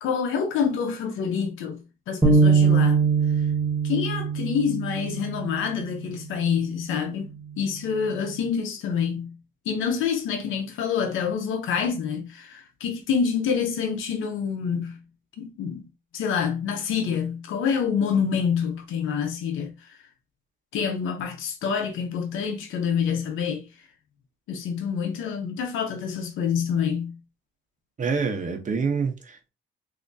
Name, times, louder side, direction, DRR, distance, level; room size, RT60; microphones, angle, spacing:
voice 1, 0.0-3.0 3.8-7.3 7.6-9.3 9.7-15.0 15.4-15.9 16.1-20.0 20.7-23.7 24.5-27.2, left 6 dB, 85° left, 0.8 m, -27 dB
sound 1, 2.2-5.7, right 5 dB, 15° right, 1.3 m, -21 dB
voice 2, 28.0-29.5, right 5 dB, 40° right, 1.0 m, -27 dB
3.5 x 2.8 x 2.7 m
cardioid pair, 90°, 20 cm